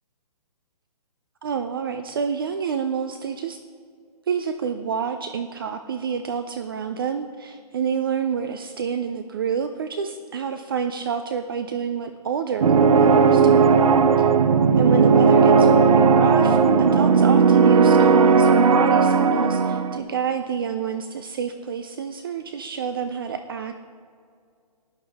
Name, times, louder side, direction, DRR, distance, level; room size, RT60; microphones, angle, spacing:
voice 1, 1.4-3.6 4.3-13.8 14.8-23.8, right 7 dB, 35° right, 8 dB, 0.4 m, -28 dB
sound 1, 12.6-20.0, right 5 dB, 60° right, 0.8 m, -16 dB
16.5 x 10.5 x 3.5 m, 2.2 s
hypercardioid pair, 160°, 20 cm